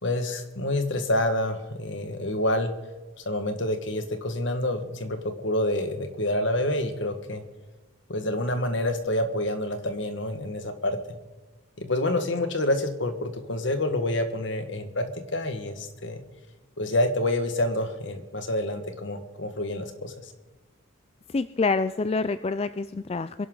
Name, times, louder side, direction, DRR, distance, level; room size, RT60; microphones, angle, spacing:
voice 1, 0.0-2.7 3.2-5.2 5.4-7.4 8.1-11.0 11.8-16.2 16.8-20.1, left 1 dB, 60° left, 7 dB, 1.7 m, -27 dB
voice 2, 21.3-23.5, left 3 dB, 30° left, 12 dB, 0.4 m, -27 dB
24.5 x 11.5 x 3.9 m, 1.1 s
head